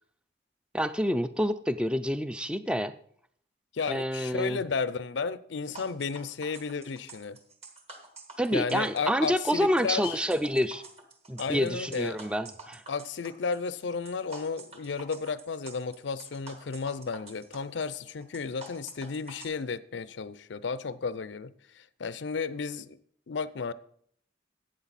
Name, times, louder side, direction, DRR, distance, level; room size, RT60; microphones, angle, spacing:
voice 1, 0.7-2.9 3.9-4.6 8.4-10.8 11.3-12.8, equal, 5° right, 0.4 m, -28 dB
voice 2, 3.7-7.4 8.5-10.2 11.4-12.2 12.9-23.0 23.3-23.7, left 5 dB, 80° left, 0.5 m, -33 dB
sound 1, 5.7-19.5, right 3 dB, 35° right, 1.6 m, -47 dB
13.0 x 8.8 x 4.1 m
head